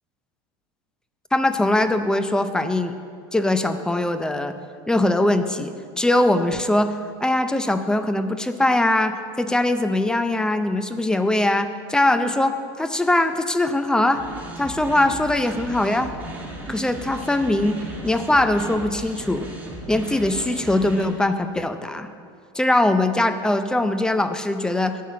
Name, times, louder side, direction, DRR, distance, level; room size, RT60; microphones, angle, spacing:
voice 1, 1.3-2.9 3.3-4.5 4.9-5.7 6.0-14.2 14.6-16.1 16.7-19.5 19.9-22.1 22.5-25.0, left 1 dB, 5° left, 9 dB, 0.5 m, -21 dB
sound 1, 14.1-21.0, right 1 dB, 10° right, 1.9 m, -36 dB
10.5 x 5.6 x 8.5 m, 2.2 s
supercardioid pair, 140°, 14 cm